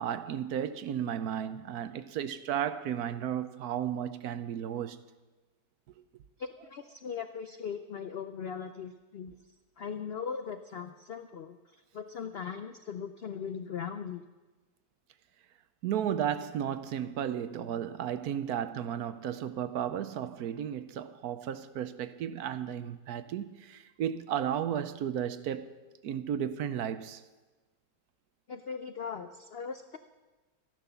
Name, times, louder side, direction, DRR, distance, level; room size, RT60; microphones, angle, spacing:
voice 1, 0.0-5.0 15.8-25.7 26.0-27.2, right 9 dB, 70° right, 1.1 m, -34 dB
voice 2, 6.4-9.4 9.8-14.2 28.5-30.0, left 6 dB, 70° left, 0.5 m, -39 dB
13.5 x 11.0 x 6.8 m
omnidirectional pair, 1.8 m